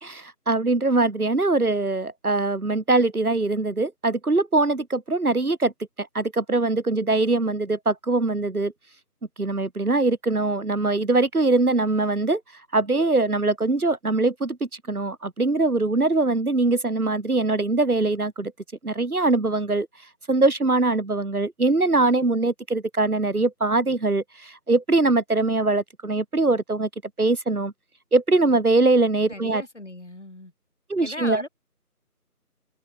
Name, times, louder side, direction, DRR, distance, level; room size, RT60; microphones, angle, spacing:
voice 1, 0.0-5.7 6.0-8.7 9.4-12.4 12.7-18.5 18.8-19.9 20.3-26.9 27.2-27.7 28.1-29.6 30.9-31.4, right 2 dB, 65° right, 1.5 m, -22 dB
voice 2, 29.3-30.5 31.0-31.5, left 1 dB, 50° left, 5.6 m, -38 dB
figure-of-eight pair, 170°, 47 cm